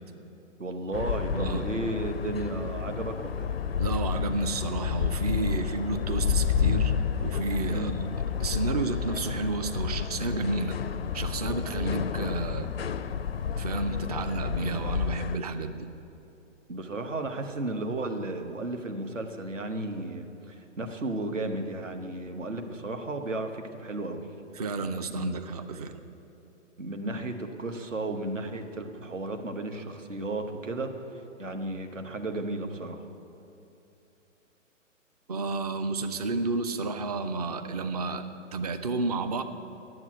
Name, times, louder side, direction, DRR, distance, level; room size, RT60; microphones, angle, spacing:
voice 1, 0.6-3.6 7.7-8.0 16.7-24.2 25.1-25.3 26.8-33.1, right 2 dB, 75° right, 5 dB, 1.2 m, -34 dB
sound 1, 0.9-15.4, left 7 dB, 55° left, 0.4 m, -30 dB
voice 2, 1.3-1.7 3.8-6.9 7.2-7.9 8.4-10.8 11.1-12.7 13.6-15.9 24.6-26.0 35.3-38.3 38.5-39.4, right 3 dB, 30° right, 8 dB, 0.5 m, -31 dB
9.7 x 7.7 x 8.2 m, 2.9 s
figure-of-eight pair, 125°, 38 cm